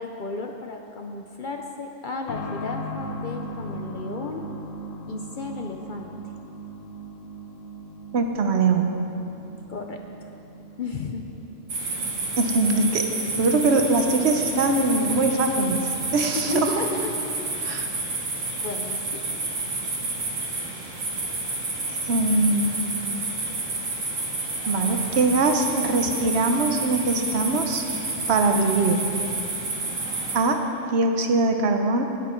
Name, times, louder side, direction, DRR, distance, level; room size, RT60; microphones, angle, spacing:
voice 1, 0.0-4.5 5.1-6.1 9.7-10.3 10.8-11.3 16.3-17.3 17.6-17.7 18.6-19.2, left 4 dB, 55° left, 3 dB, 0.6 m, -33 dB
sound 1, 2.3-16.7 17.0-17.1 18.0-18.1, right 1 dB, 80° left, 1.2 m, -40 dB
voice 2, 8.1-8.9 12.4-13.1 13.4-15.9 16.1-16.7 17.6-17.9 21.9-22.9 24.7-27.8 28.3-29.0 30.3-30.6 30.9-32.0, right 3 dB, 60° right, 5 dB, 1.0 m, -22 dB
sound 2, 11.7-30.4, right 2 dB, 80° right, 1.9 m, -30 dB
10.0 x 9.2 x 4.4 m, 2.9 s
omnidirectional pair, 1.3 m